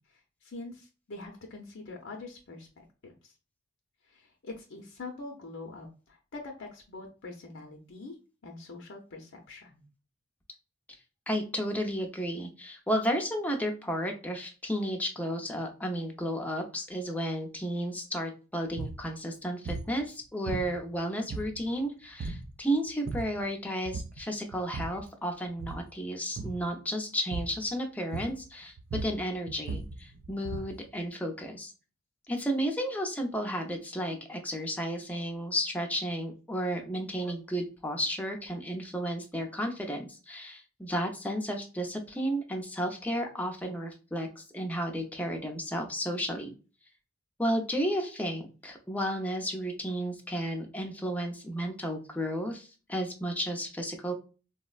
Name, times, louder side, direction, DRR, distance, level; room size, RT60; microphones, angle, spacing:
voice 1, 0.1-3.3 4.1-8.2 8.4-9.8, left 3 dB, 60° left, 1 dB, 0.6 m, -44 dB
voice 2, 11.3-28.8 29.0-31.7 32.3-46.6 47.4-54.1, equal, 5° left, 2 dB, 0.6 m, -33 dB
sound 1, 18.7-19.0 19.7-20.0 20.5-21.0 21.3-21.8 22.2-22.5 22.9-23.4 23.9-24.2 24.5-25.1 25.5-25.9 26.4-26.7 27.3-27.7 28.1-28.5 28.8-30.8, right 3 dB, 50° right, 0.4 m, -37 dB
4.1 x 2.1 x 2.3 m, 0.33 s
head